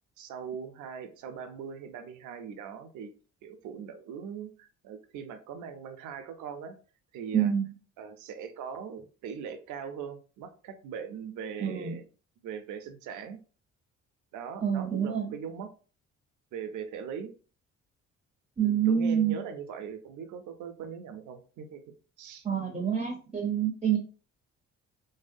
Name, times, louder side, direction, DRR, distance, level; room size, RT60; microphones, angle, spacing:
voice 1, 0.2-3.1 3.4-6.8 7.1-7.5 8.0-12.0 12.4-13.4 14.3-15.7 16.5-17.3 18.6-21.8 22.2-22.5, right 7 dB, 80° right, 7 dB, 0.5 m, -40 dB
voice 2, 7.3-7.7 11.6-12.0 14.6-15.3 18.6-19.4 22.4-24.0, right 8 dB, 20° right, 2 dB, 0.5 m, -27 dB
2.6 x 2.1 x 2.5 m, 0.37 s
cardioid pair, 90°, 30 cm